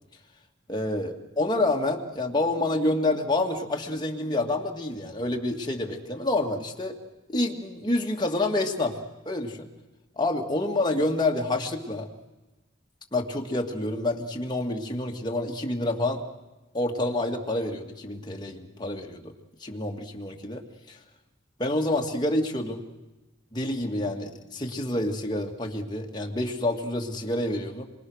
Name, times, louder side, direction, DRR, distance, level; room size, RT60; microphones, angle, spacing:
voice 1, 0.7-6.9 7.3-9.0 9.3-9.7 10.2-12.1 13.1-16.2 16.7-19.3 19.6-20.6 20.9-21.0 21.6-22.8 23.5-27.9, left 2 dB, 25° left, 1 dB, 2.3 m, -28 dB
26.0 x 23.5 x 6.5 m, 1.1 s
head